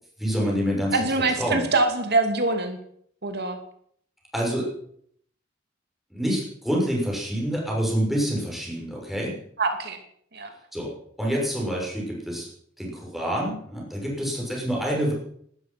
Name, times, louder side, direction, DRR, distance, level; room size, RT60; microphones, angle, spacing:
voice 1, 0.2-1.1 1.4-1.7 4.3-4.7 6.1-9.4 10.7-12.5 12.8-15.1, equal, ahead, -3 dB, 6.6 m, -27 dB
voice 2, 0.9-2.8 3.2-3.6 9.6-10.0 10.3-10.5, right 3 dB, 55° right, 6 dB, 2.5 m, -24 dB
18.5 x 12.5 x 5.9 m, 0.65 s
head